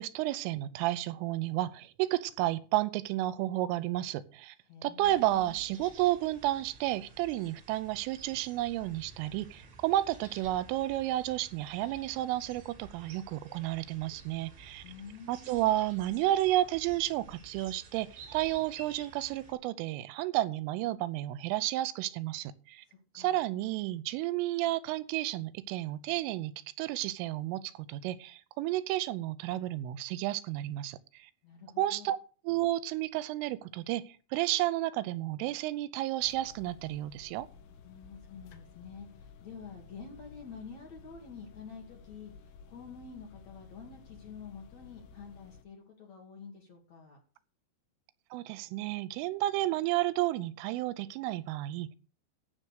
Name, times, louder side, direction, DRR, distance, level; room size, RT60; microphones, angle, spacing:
voice 1, 0.0-4.6 4.8-14.8 15.3-22.8 23.2-31.3 31.8-32.2 32.5-37.5 48.3-52.0, right 15 dB, 85° right, 3.3 m, -32 dB
voice 2, 4.7-5.6 14.8-15.9 22.9-23.4 31.4-32.1 37.8-47.2, left 5 dB, 45° left, 2.6 m, -48 dB
sound 1, 5.0-19.5, right 4 dB, 65° right, 5.5 m, -53 dB
sound 2, 36.2-45.6, left 6 dB, 75° left, 3.4 m, -54 dB
14.5 x 6.3 x 6.6 m
omnidirectional pair, 5.7 m